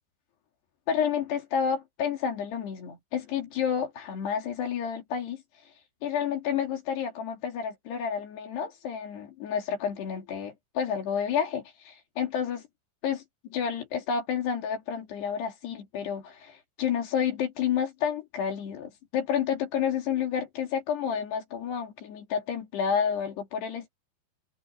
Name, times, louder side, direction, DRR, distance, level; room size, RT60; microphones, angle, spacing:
voice 1, 0.9-5.4 6.0-12.6 13.0-13.2 13.5-23.9, left 7 dB, 60° left, 4.4 m, -30 dB
omnidirectional pair, 5.8 m